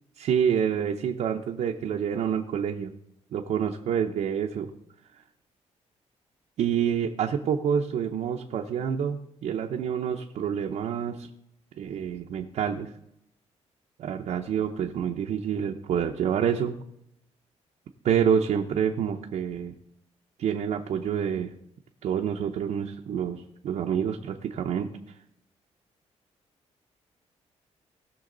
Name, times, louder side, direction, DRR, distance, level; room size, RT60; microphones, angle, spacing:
voice 1, 0.2-2.9 3.3-4.7 6.6-11.3 11.8-12.9 14.0-16.7 18.0-19.7 20.4-21.5 22.0-24.9, right 8 dB, 70° right, 2 dB, 0.8 m, -27 dB
18.5 x 6.3 x 3.9 m, 0.79 s
cardioid pair, 115°, 12 cm